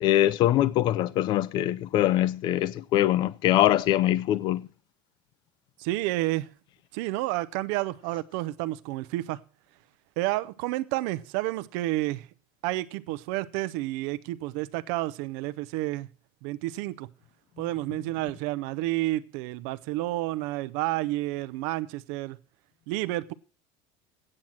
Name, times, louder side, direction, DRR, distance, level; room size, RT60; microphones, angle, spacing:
voice 1, 0.0-4.7, left 13 dB, 40° left, 0.4 m, -23 dB
voice 2, 5.8-6.5 6.9-9.4 10.2-12.3 12.6-16.1 16.4-17.1 17.6-22.4 22.9-23.3, right 17 dB, 70° right, 0.6 m, -30 dB
8.8 x 7.8 x 7.3 m
cardioid pair, 150°, 11 cm